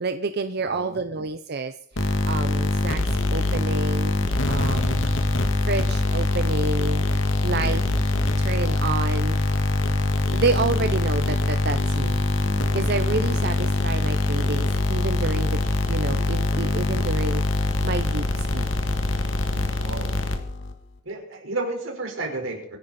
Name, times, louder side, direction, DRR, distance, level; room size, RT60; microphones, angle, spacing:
voice 1, 0.0-3.0 3.3-4.1 4.5-5.0 5.7-7.1 7.4-7.8 8.4-9.4 10.3-12.2 12.7-18.7, right 3 dB, 55° right, 9 dB, 0.7 m, -29 dB
voice 2, 0.6-1.0 7.5-7.8 19.5-20.2 21.0-22.8, right 2 dB, 90° right, 2 dB, 4.8 m, -32 dB
sound 1, 2.0-20.7, left 2 dB, 70° left, 1.9 m, -23 dB
25.0 x 10.5 x 4.3 m, 0.67 s
head